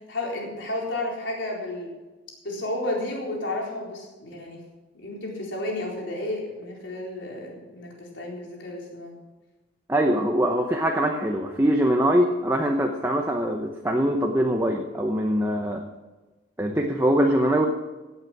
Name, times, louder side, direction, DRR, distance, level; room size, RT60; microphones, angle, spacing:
voice 1, 0.0-1.9 2.4-4.6 4.9-9.1, left 1 dB, 70° left, -2 dB, 4.1 m, -32 dB
voice 2, 9.9-15.8 16.6-17.7, equal, 15° right, 2 dB, 0.9 m, -23 dB
16.5 x 8.1 x 6.2 m, 1.2 s
head